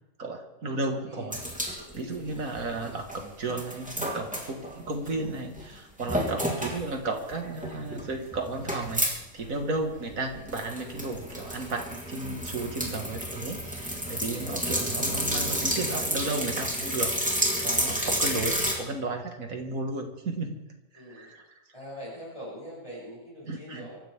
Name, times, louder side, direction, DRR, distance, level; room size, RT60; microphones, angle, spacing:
voice 1, 0.2-1.4 1.7-20.6 20.9-21.6 23.5-23.9, right 2 dB, 75° right, 4 dB, 2.3 m, -34 dB
sound 1, 1.3-3.2 3.5-5.3 5.6-5.7 6.0-6.8 7.2-9.2 9.4-9.5 9.8-18.7, equal, 5° right, 3.0 m, -30 dB
voice 2, 1.7-2.2 6.1-6.5 9.9-10.3 14.3-14.6 17.6-18.1 21.0-21.3 21.7-24.0, equal, 25° left, -8 dB, 8.1 m, -44 dB
25.5 x 14.5 x 3.7 m, 0.96 s
omnidirectional pair, 1.5 m